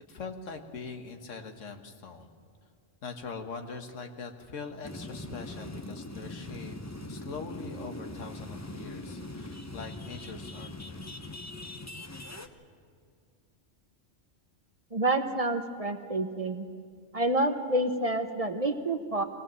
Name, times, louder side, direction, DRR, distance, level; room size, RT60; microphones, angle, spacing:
voice 1, 0.1-2.3 3.0-6.8 7.1-11.0, left 4 dB, 85° left, 5 dB, 1.7 m, -42 dB
sound 1, 4.8-12.5, left 2 dB, 15° left, 0.7 m, -41 dB
voice 2, 14.9-16.7 17.1-19.2, right 2 dB, 30° right, 7 dB, 0.9 m, -28 dB
22.5 x 18.0 x 7.5 m, 2.2 s
omnidirectional pair, 1.3 m